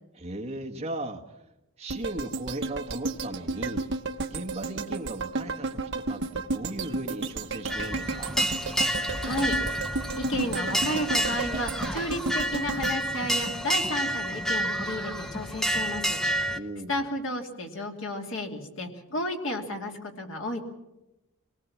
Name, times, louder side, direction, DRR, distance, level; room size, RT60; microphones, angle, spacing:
voice 1, 0.1-1.2 1.8-3.8 4.3-8.4 16.5-17.1, right 1 dB, 30° right, 1 dB, 1.5 m, -37 dB
sound 1, 1.9-14.1 14.5-14.6, right 3 dB, 55° right, 0.9 m, -33 dB
sound 2, 7.7-16.6, equal, ahead, 0.7 m, -29 dB
voice 2, 9.2-9.6 10.2-16.2 16.9-20.6, left 1 dB, 60° left, 3 dB, 2.6 m, -32 dB
24.0 x 19.0 x 7.3 m, 0.95 s
head